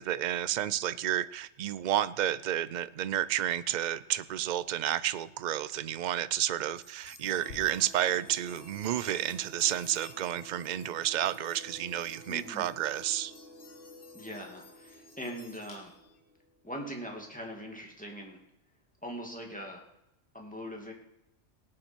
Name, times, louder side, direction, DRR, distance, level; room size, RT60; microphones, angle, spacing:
voice 1, 0.0-13.3, right 11 dB, 65° right, 15 dB, 0.4 m, -31 dB
sound 1, 6.7-16.2, left 4 dB, 75° left, 1.8 m, -55 dB
sound 2, 7.3-16.7, equal, 40° left, 3.4 m, -53 dB
voice 2, 12.3-12.7 14.1-15.9 16.6-18.4 19.0-19.8 20.3-20.9, equal, 5° left, 0 dB, 2.4 m, -41 dB
18.0 x 8.8 x 4.5 m, 0.87 s
omnidirectional pair, 1.3 m